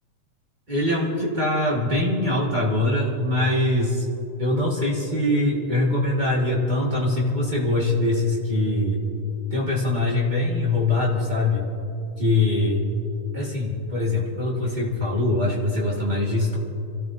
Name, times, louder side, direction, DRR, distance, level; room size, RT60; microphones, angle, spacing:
voice 1, 0.7-4.1 4.4-9.0 9.5-11.7 12.2-12.9 13.3-16.6, left 2 dB, 65° right, -4 dB, 0.4 m, -23 dB
28.0 x 14.0 x 2.6 m, 2.8 s
omnidirectional pair, 4.0 m